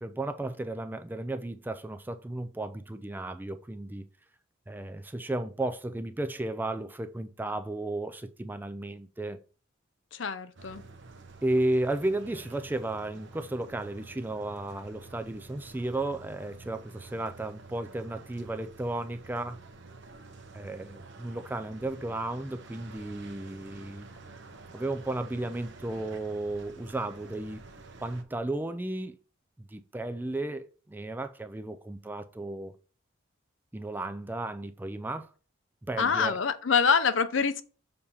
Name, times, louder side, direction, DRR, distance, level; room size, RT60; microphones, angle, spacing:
voice 1, 0.0-4.1 4.7-9.4 11.4-19.6 20.5-24.1 24.7-27.6 28.0-29.2 29.6-32.7 33.7-35.3 35.9-36.4, right 2 dB, 10° right, 0.3 m, -34 dB
voice 2, 10.1-10.8 36.0-37.6, left 6 dB, 65° left, 0.6 m, -25 dB
sound 1, 10.6-28.2, right 3 dB, 60° right, 0.8 m, -49 dB
6.7 x 2.8 x 5.4 m
head